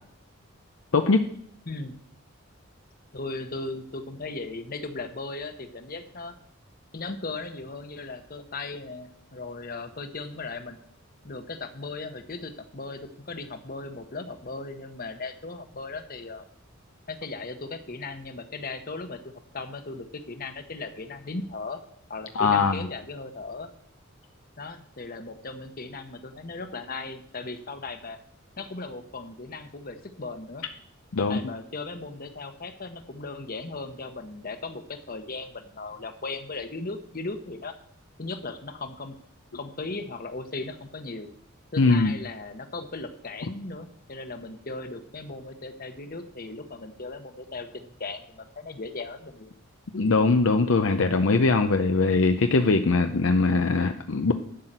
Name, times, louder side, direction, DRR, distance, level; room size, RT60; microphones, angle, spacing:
voice 1, 1.7-2.0 3.1-6.3 6.9-10.8 11.2-16.4 17.1-21.8 22.1-23.7 24.6-28.2 28.6-30.6 31.2-37.7 38.2-39.2 39.5-41.3 41.7-49.5, left 3 dB, 45° left, 8 dB, 1.0 m, -37 dB
voice 2, 22.4-22.8 31.1-31.5 41.8-42.1 49.9-54.3, left 3 dB, 65° left, 7 dB, 0.6 m, -21 dB
11.5 x 5.8 x 7.9 m, 0.65 s
head